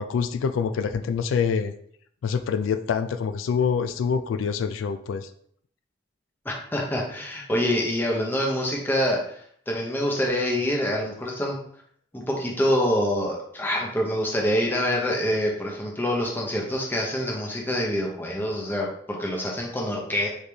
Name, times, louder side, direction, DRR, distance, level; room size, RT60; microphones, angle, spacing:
voice 1, 0.0-1.7 2.2-5.3, left 6 dB, 85° left, 9 dB, 0.3 m, -26 dB
voice 2, 6.4-9.4 9.7-11.6 12.1-20.3, equal, 10° left, -2 dB, 0.8 m, -26 dB
4.0 x 3.3 x 3.4 m, 0.63 s
head